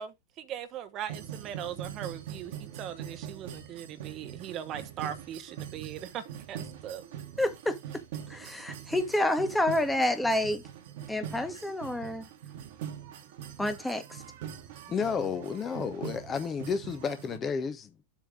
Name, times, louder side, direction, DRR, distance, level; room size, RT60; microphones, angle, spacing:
voice 1, 0.0-7.0, right 10 dB, 35° right, 1.0 m, -40 dB
sound 1, 1.1-17.4, right 9 dB, 50° right, 1.4 m, -43 dB
voice 2, 7.4-8.0 8.3-10.6 11.1-12.3 13.6-14.2, left 1 dB, 5° left, 1.3 m, -29 dB
voice 3, 14.9-17.9, left 6 dB, 25° left, 0.7 m, -31 dB
7.5 x 3.4 x 5.0 m
figure-of-eight pair, 90°, 0 cm